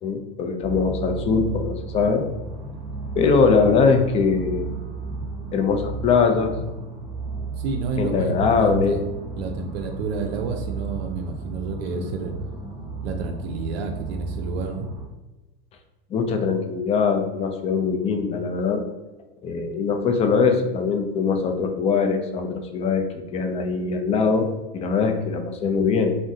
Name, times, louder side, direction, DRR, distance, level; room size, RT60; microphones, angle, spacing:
voice 1, 0.0-2.3 3.2-4.7 5.5-6.5 8.0-9.0 11.9-12.1 16.1-18.8 19.4-26.2, left 5 dB, 20° left, 5 dB, 0.3 m, -22 dB
sound 1, 0.6-15.1, right 4 dB, 10° right, 1.2 m, -34 dB
voice 2, 7.6-9.0 9.4-12.3 13.0-14.9, right 4 dB, 85° right, 4 dB, 0.5 m, -30 dB
2.6 x 2.1 x 3.6 m, 1.1 s
supercardioid pair, 115°, 30 cm